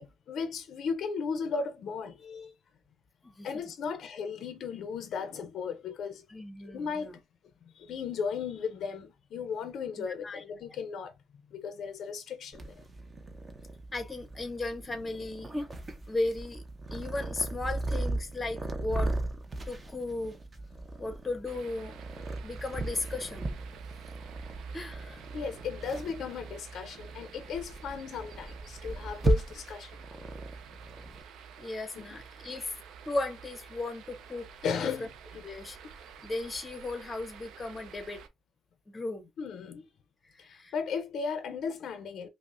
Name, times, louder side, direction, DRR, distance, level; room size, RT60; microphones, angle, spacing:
voice 1, 0.0-2.5 3.4-6.2 6.7-7.2 7.8-11.1 11.5-12.7 20.9-21.0 25.3-30.0 32.0-32.1 34.6-35.4 39.4-39.9 40.4-42.3, left 6 dB, 55° left, 0.5 m, -36 dB
voice 2, 3.2-4.1 6.3-7.2 10.0-10.4 13.9-15.5 16.1-16.6 16.9-19.1 19.7-20.4 21.0-22.0 22.4-23.6 24.7-25.2 31.6-32.7 33.1-35.1 35.4-35.8 36.2-38.2 38.9-39.3 40.2-40.7, left 2 dB, 15° left, 0.7 m, -36 dB
Purr, 12.5-31.2, right 2 dB, 20° right, 0.5 m, -36 dB
sound 1, 21.5-38.3, right 6 dB, 70° right, 0.5 m, -48 dB
5.2 x 2.0 x 2.4 m
cardioid pair, 160°, 0 cm